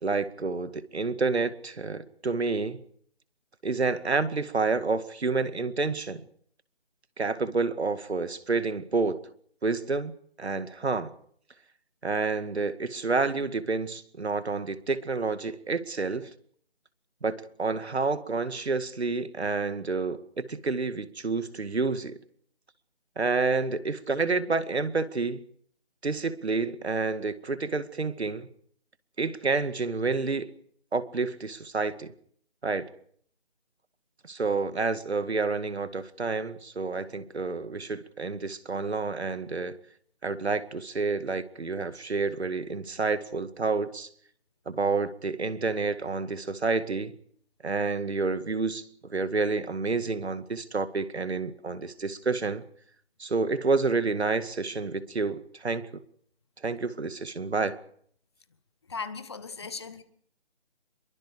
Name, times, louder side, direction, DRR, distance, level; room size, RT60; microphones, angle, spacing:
voice 1, 0.0-2.8 3.6-6.3 7.2-9.2 9.6-10.1 10.4-11.1 12.0-16.3 17.2-22.2 23.2-25.4 26.0-28.5 29.2-30.5 30.9-32.1 32.6-32.9 34.2-39.8 40.2-44.1 44.7-47.1 47.6-52.6 53.2-56.0 56.6-57.8, right 4 dB, 70° right, 2.1 m, -29 dB
voice 2, 58.9-60.0, left 5 dB, 25° left, 1.2 m, -37 dB
27.0 x 23.0 x 5.0 m
figure-of-eight pair, 165°, 33 cm